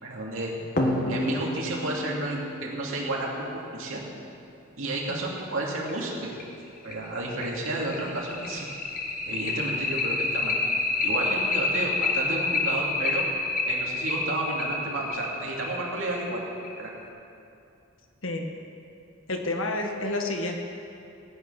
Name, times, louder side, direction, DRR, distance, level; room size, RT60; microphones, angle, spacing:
voice 1, 0.0-0.5 1.1-4.0 4.8-6.1 6.8-8.7 9.2-10.5 11.0-13.3 13.7-16.4 16.8-16.9, right 2 dB, 75° right, -3 dB, 2.7 m, -31 dB
sound 1, 0.8-3.9 5.4-5.5 5.9-6.0 6.4-6.5 6.9-17.0, left 3 dB, 40° left, 1.2 m, -29 dB
voice 2, 19.3-20.5, left 2 dB, 75° left, 3 dB, 1.4 m, -29 dB
16.5 x 9.3 x 5.8 m, 2.6 s
head